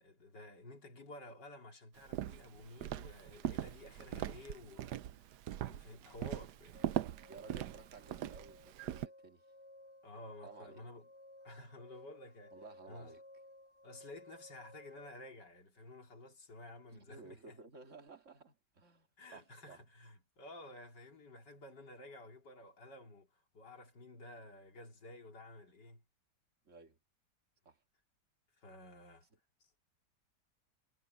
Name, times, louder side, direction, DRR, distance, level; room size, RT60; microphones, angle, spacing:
voice 1, 0.0-6.9 10.0-11.1 11.4-12.5 12.9-13.1 13.8-17.6 19.2-26.0 28.6-29.3, left 1 dB, 85° left, 3.7 m, -53 dB
Walk footsteps, 2.0-9.1, right 12 dB, 80° right, 1.2 m, -41 dB
sound 1, 6.7-15.1, left 1 dB, 40° left, 8.4 m, -58 dB
voice 2, 7.3-9.5 10.4-10.8 12.5-13.2 16.9-19.8 26.6-27.0 27.7-27.8, right 4 dB, 45° right, 2.3 m, -55 dB
omnidirectional pair, 1.8 m